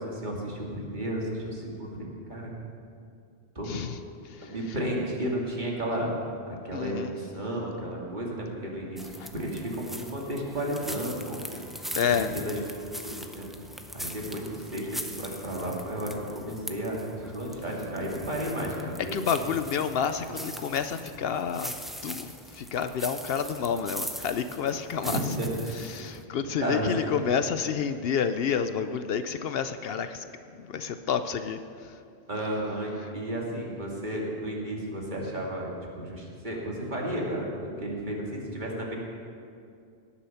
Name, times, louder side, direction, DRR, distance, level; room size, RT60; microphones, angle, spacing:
voice 1, 0.0-2.5 3.6-3.7 4.4-6.1 6.5-11.6 12.1-12.6 12.9-13.5 13.9-19.2 20.3-20.4 25.0-25.6 26.6-27.1 32.3-38.9, right 1 dB, 45° right, -3 dB, 2.3 m, -33 dB
voice 2, 6.7-7.1 9.2-9.3 11.9-12.3 19.1-21.7 22.0-25.2 25.9-30.2 30.6-31.6, left 7 dB, 70° left, 10 dB, 0.7 m, -29 dB
sound 1, 9.0-26.2, equal, ahead, 0.4 m, -41 dB
18.5 x 7.1 x 5.7 m, 2.4 s
omnidirectional pair, 1.1 m